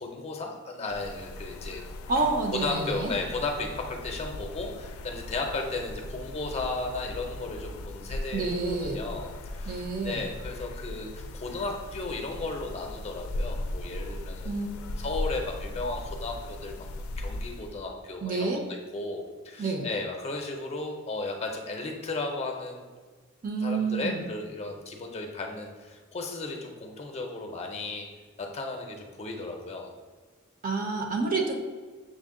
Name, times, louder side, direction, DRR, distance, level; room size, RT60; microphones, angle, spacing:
voice 1, 0.0-1.8 2.1-8.5 8.9-16.8 17.2-22.8 23.6-28.1 28.4-29.9, left 3 dB, 30° left, 2 dB, 0.5 m, -35 dB
sound 1, 0.9-17.8, left 1 dB, 90° left, 0.3 m, -38 dB
voice 2, 2.1-3.1 8.3-9.0 9.6-10.3 14.4-14.7 18.2-18.6 19.6-19.9 23.4-24.3 30.6-31.6, right 3 dB, 40° right, 2 dB, 0.6 m, -29 dB
6.3 x 2.1 x 3.6 m, 1.5 s
head